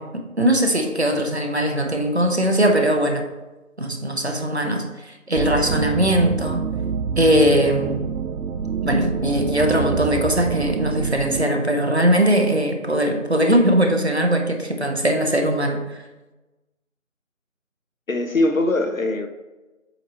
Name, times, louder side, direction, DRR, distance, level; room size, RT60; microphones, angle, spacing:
voice 1, 0.0-3.3 3.8-6.6 7.2-8.0 8.8-16.0, right 1 dB, 55° right, 4 dB, 0.8 m, -20 dB
sound 1, 5.4-11.5, right 7 dB, 85° right, 0.5 m, -27 dB
voice 2, 18.1-19.3, left 2 dB, 75° left, 6 dB, 1.0 m, -21 dB
7.8 x 3.1 x 4.2 m, 1.1 s
figure-of-eight pair, 180°, 41 cm